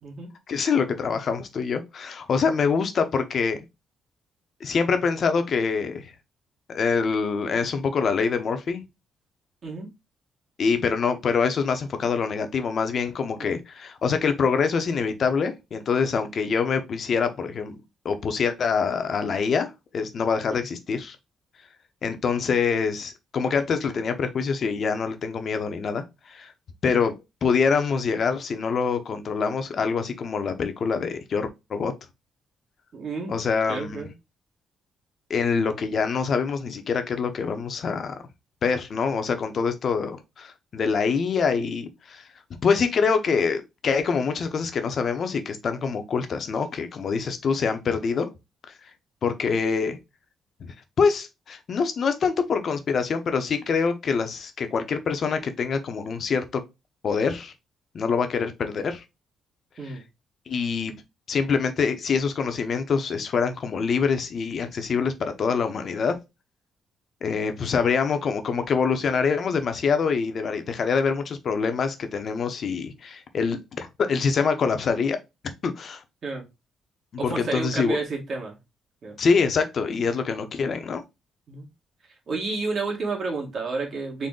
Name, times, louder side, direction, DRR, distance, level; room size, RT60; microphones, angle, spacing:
voice 1, 0.5-3.6 4.6-6.1 6.7-8.8 10.6-17.8 18.0-21.2 22.0-26.5 26.8-31.9 33.3-34.0 35.3-38.2 38.6-42.2 42.6-48.3 48.7-48.8 49.2-50.0 50.6-56.6 57.0-57.5 57.9-59.0 59.8-60.0 60.5-60.9 61.3-66.2 67.2-75.2 75.6-76.0 77.1-78.0 79.2-81.0, left 5 dB, 55° left, 0.7 m, -25 dB
voice 2, 32.9-33.3 33.7-34.1 59.8-60.0 76.2-76.4 77.2-78.6 79.0-79.2 81.5-81.7 82.3-84.3, right 3 dB, 50° right, 1.4 m, -31 dB
3.9 x 2.1 x 3.6 m
cardioid pair, 90°, 0 cm